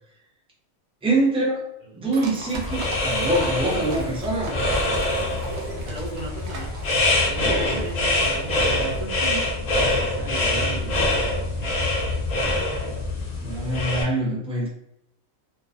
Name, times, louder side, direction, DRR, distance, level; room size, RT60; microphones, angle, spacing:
voice 1, 1.0-1.6 1.9-4.6 13.4-14.7, right 2 dB, 5° right, -4 dB, 0.4 m, -24 dB
sound 1, 2.1-9.1, right 2 dB, 65° right, 0.7 m, -38 dB
sound 2, 2.5-14.0, left 2 dB, 70° left, 0.4 m, -25 dB
voice 2, 5.5-6.7 7.3-9.5 9.9-11.3, right 2 dB, 80° right, -6 dB, 0.4 m, -36 dB
2.4 x 2.3 x 2.5 m, 0.76 s
omnidirectional pair, 1.4 m